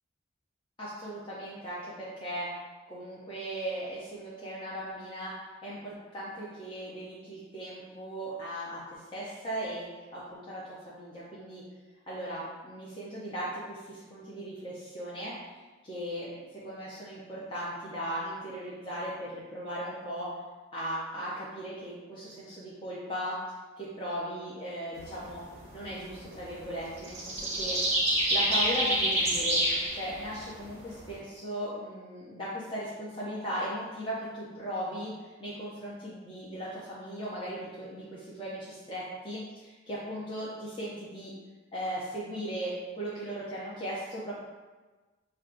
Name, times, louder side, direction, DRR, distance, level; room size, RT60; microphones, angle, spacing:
voice 1, 0.8-2.5 2.9-5.3 5.6-9.9 10.1-11.6 12.1-15.3 15.8-20.3 20.7-23.4 23.8-25.4 25.7-27.8 28.3-29.6 29.9-41.3 41.7-44.3, equal, 25° left, -9 dB, 0.6 m, -37 dB
sound 1, 25.0-25.3 25.8-25.9 26.2-26.6 27.0-31.2, right 1 dB, 35° right, 1.0 m, -27 dB
6.0 x 2.3 x 2.5 m, 1.3 s
head